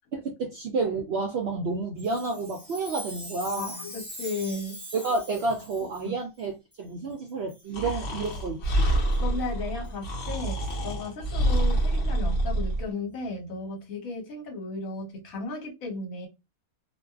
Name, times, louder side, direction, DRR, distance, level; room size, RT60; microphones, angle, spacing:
voice 1, 0.1-3.8 4.9-8.9, right 3 dB, 65° right, 0.6 m, -30 dB
Chime, 2.0-6.1 6.7-6.8 7.5-7.7 8.2-8.4 9.1-9.2 9.8-9.9 10.7-10.8, equal, 20° right, 0.9 m, -42 dB
voice 2, 3.6-4.8 6.0-6.2 7.8-7.9 9.2-16.3, left 3 dB, 70° left, 1.3 m, -35 dB
Breathing, 7.7-12.8, right 1 dB, 55° left, 1.0 m, -26 dB
2.5 x 2.3 x 2.3 m
omnidirectional pair, 1.5 m